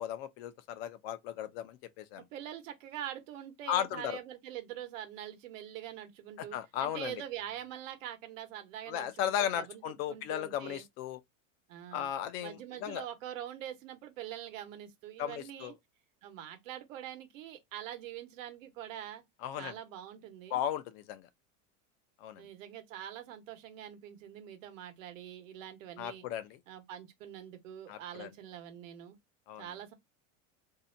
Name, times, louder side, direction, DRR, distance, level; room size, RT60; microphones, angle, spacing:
voice 1, 0.0-2.2 3.7-4.2 6.4-7.1 8.9-11.2 11.9-13.0 15.2-15.7 19.4-19.8 20.5-21.3 22.2-22.4 26.0-26.6 27.9-28.3 29.5-29.7, left 10 dB, 50° left, 0.5 m, -36 dB
voice 2, 2.3-10.8 11.7-12.1 12.4-15.7 16.2-19.2 19.6-20.6 22.4-26.3 26.7-29.2 29.6-29.9, right 11 dB, 85° right, 0.9 m, -44 dB
2.6 x 2.1 x 2.5 m
supercardioid pair, 160°, 38 cm